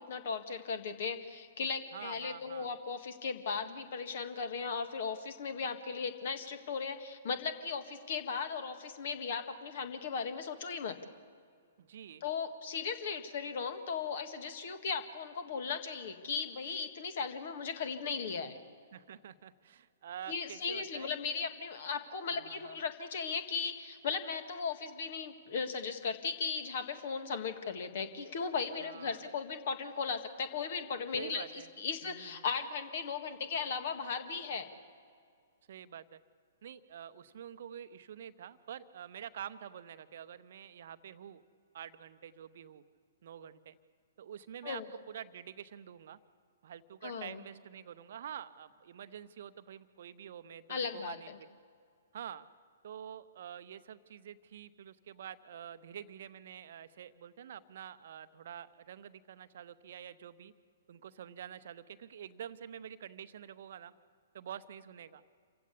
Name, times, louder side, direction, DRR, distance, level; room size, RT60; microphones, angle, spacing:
voice 1, 0.0-11.0 12.2-18.6 20.3-34.7 44.6-44.9 47.0-47.4 50.7-51.4, left 5 dB, 50° left, 9 dB, 1.8 m, -37 dB
voice 2, 1.9-2.7 11.8-12.2 18.9-21.1 22.3-22.8 28.8-29.3 31.2-31.7 32.0-32.5 35.7-36.2 36.6-41.4 41.7-42.8 43.2-43.8 44.2-46.2 46.6-51.5 52.1-52.4 52.8-60.5 60.9-63.9 64.3-65.2, right 9 dB, 50° right, 13 dB, 0.8 m, -47 dB
27.0 x 16.0 x 8.3 m, 2.2 s
figure-of-eight pair, 115°, 0 cm